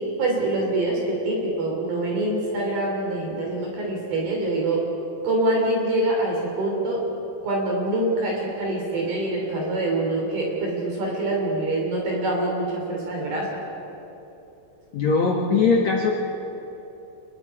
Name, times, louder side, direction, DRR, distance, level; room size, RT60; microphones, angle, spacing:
voice 1, 0.0-4.8 5.2-7.0 7.4-13.6, right 2 dB, 65° right, -1 dB, 5.2 m, -25 dB
voice 2, 14.9-16.1, left 4 dB, 60° left, -1 dB, 2.0 m, -20 dB
28.0 x 22.0 x 4.9 m, 3.0 s
omnidirectional pair, 4.6 m